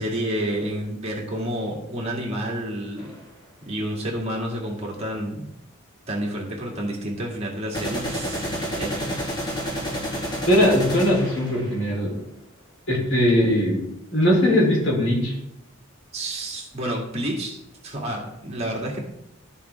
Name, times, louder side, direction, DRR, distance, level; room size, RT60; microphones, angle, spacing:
voice 1, 0.0-3.1 3.7-5.4 6.1-9.2 16.1-17.6 17.8-19.0, right 1 dB, 30° right, -2 dB, 2.3 m, -29 dB
sound 1, 3.0-3.1 7.7-11.9, equal, 20° left, 1.9 m, -29 dB
voice 2, 10.5-12.2 12.9-13.8 14.1-15.3, left 1 dB, 65° left, -2 dB, 3.6 m, -20 dB
12.5 x 7.1 x 3.6 m, 0.83 s
head